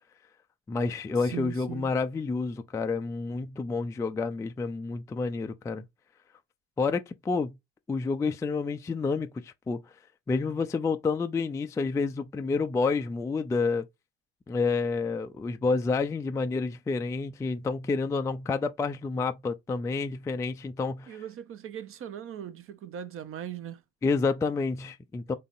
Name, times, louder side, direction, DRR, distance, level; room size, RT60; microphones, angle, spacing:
voice 1, 0.7-5.8 6.8-7.6 7.9-9.8 10.3-13.8 14.5-21.2 24.0-25.3, left 4 dB, 10° left, 0.3 m, -29 dB
voice 2, 1.2-1.9 21.1-23.8, right 9 dB, 40° right, 0.7 m, -39 dB
3.7 x 3.4 x 2.5 m
figure-of-eight pair, 55°, 33 cm